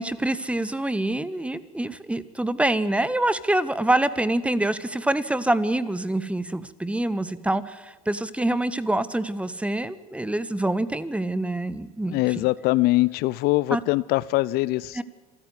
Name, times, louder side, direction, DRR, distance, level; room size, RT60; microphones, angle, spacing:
voice 1, 0.0-12.4 13.7-13.8 14.9-15.0, right 1 dB, 5° right, 16 dB, 1.5 m, -26 dB
voice 2, 12.1-15.0, left 19 dB, 55° left, 20 dB, 0.6 m, -23 dB
26.0 x 14.5 x 9.6 m, 1.3 s
hypercardioid pair, 75°, 19 cm